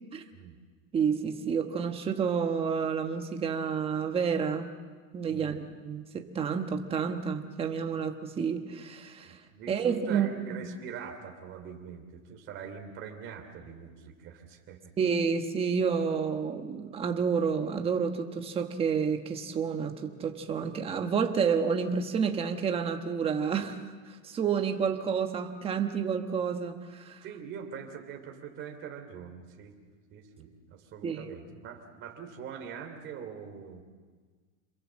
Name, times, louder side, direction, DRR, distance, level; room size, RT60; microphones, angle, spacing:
voice 1, 0.9-4.7 5.1-9.4 9.7-10.6 15.0-23.8 24.1-27.2 31.0-31.4, right 6 dB, 15° right, 5 dB, 1.2 m, -30 dB
voice 2, 9.3-14.9 27.2-29.7 30.1-33.8, right 7 dB, 30° right, 3 dB, 3.1 m, -43 dB
27.0 x 22.0 x 7.5 m, 1.5 s
supercardioid pair, 160°, 39 cm